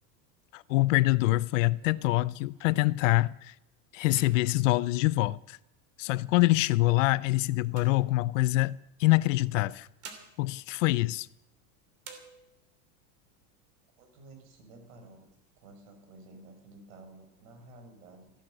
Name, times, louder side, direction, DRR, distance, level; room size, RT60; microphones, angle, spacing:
voice 1, 0.5-3.5 3.9-5.6 6.0-9.9 10.4-11.3, left 19 dB, 65° left, 0.6 m, -25 dB
sound 1, 0.8-2.9 3.4-3.6 4.0-5.9 6.6-8.7 9.6-11.6 12.0-12.8 13.3-13.4 13.7-14.3 14.8-15.7, right 6 dB, 35° right, 2.9 m, -54 dB
voice 2, 14.0-15.3 15.6-18.3, right 2 dB, 70° right, 6.1 m, -52 dB
15.0 x 11.5 x 7.7 m
supercardioid pair, 155°, 42 cm